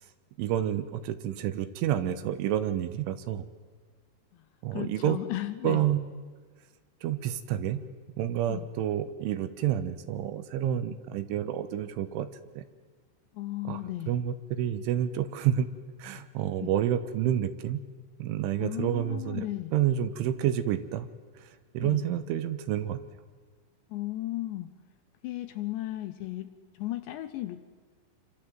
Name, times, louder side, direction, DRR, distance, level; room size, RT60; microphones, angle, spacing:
voice 1, 0.4-3.5 4.6-5.2 5.6-6.1 7.0-7.9 8.2-12.3 12.6-12.7 13.7-13.8 14.1-15.7 16.0-17.8 18.2-21.1 21.4-23.0, right 11 dB, 75° right, 11 dB, 3.4 m, -29 dB
voice 2, 4.7-5.8 8.5-8.7 13.3-14.2 16.6-16.7 18.6-19.7 21.8-22.1 23.9-24.7 25.2-27.7, left 15 dB, 75° left, 10 dB, 2.7 m, -35 dB
27.0 x 25.5 x 7.8 m, 1.5 s
omnidirectional pair, 5.8 m